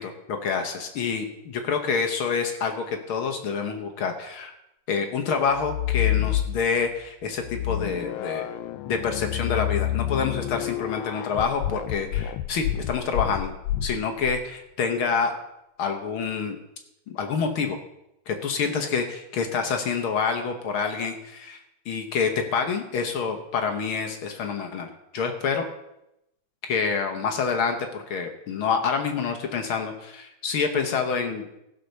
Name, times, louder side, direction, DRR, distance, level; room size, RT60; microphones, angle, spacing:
voice 1, 0.0-4.5 4.9-8.4 8.8-13.5 13.8-15.3 15.8-16.6 17.1-17.8 18.3-21.6 21.8-25.6 26.7-31.6, left 5 dB, 60° left, 4 dB, 1.4 m, -27 dB
sound 1, 5.5-6.9 7.4-14.4, left 13 dB, 85° left, 2.0 m, -28 dB
16.0 x 5.4 x 6.6 m, 0.85 s
omnidirectional pair, 3.4 m